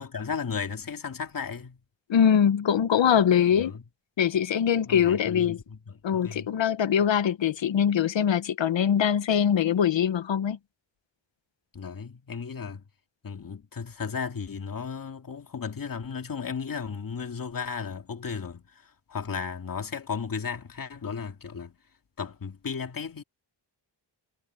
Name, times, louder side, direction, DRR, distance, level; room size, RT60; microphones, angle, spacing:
voice 1, 0.0-1.8 3.6-3.8 4.9-6.5 11.7-12.8 13.2-21.8 22.2-23.2, left 6 dB, 45° left, 2.3 m, -35 dB
voice 2, 2.1-3.8 4.2-5.6 6.0-10.6, left 8 dB, 75° left, 1.0 m, -23 dB
wide cardioid pair, 170°, 46 cm